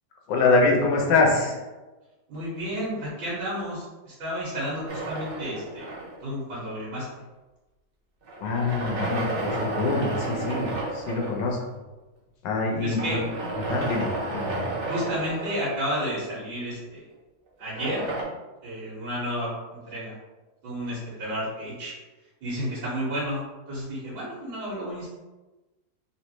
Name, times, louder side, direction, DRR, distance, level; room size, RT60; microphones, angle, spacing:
voice 1, 0.3-1.6 8.4-11.6 12.4-13.2 13.6-14.7, left 3 dB, 75° left, 0 dB, 1.4 m, -24 dB
voice 2, 2.3-5.9 6.2-7.2 12.8-13.2 14.9-17.0 17.6-18.1 18.6-20.1 20.6-21.9 22.4-25.1, equal, 85° right, -10 dB, 2.0 m, -31 dB
sound 1, 4.9-6.4 8.3-11.4 12.9-16.1 17.6-18.2, right 2 dB, 55° right, 0.6 m, -32 dB
3.6 x 3.2 x 3.0 m, 1.1 s
omnidirectional pair, 2.0 m